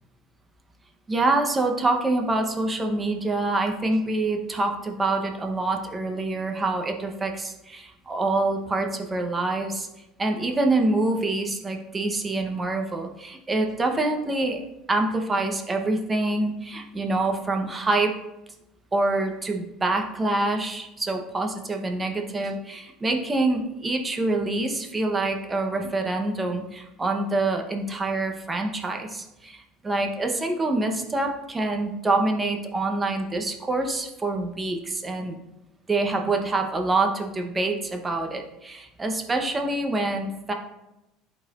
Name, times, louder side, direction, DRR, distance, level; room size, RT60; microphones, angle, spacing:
voice 1, 1.1-9.9 10.2-14.6 14.9-18.1 18.9-35.4 35.9-40.5, right 2 dB, 20° right, 3 dB, 0.9 m, -26 dB
11.0 x 4.0 x 2.5 m, 0.94 s
supercardioid pair, 100°, 0 cm